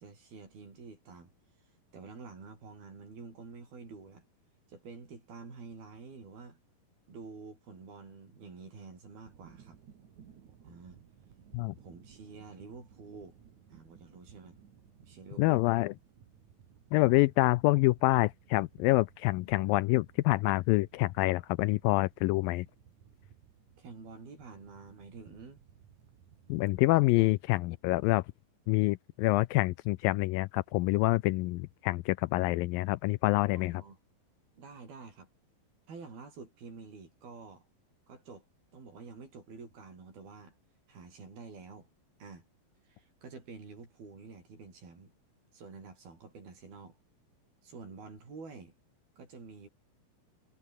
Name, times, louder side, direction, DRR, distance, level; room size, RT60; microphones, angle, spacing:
voice 1, 0.0-4.2 4.7-6.6 7.1-9.8 10.6-11.0 11.8-13.4 13.7-14.6 15.0-15.6 23.8-25.6 27.1-27.4 33.6-34.0 34.6-35.3 35.9-37.7 38.1-38.5 38.7-40.6 40.9-41.9 42.2-42.5 42.8-45.1 45.5-47.0 47.6-48.7 49.2-49.7, right 4 dB, 85° right, 9.2 m, -49 dB
sound 1, 9.3-27.2, right 8 dB, 55° right, 3.5 m, -59 dB
voice 2, 15.4-15.9 16.9-22.7 26.5-28.2 28.7-33.8, left 20 dB, 80° left, 2.2 m, -27 dB
omnidirectional pair, 4.2 m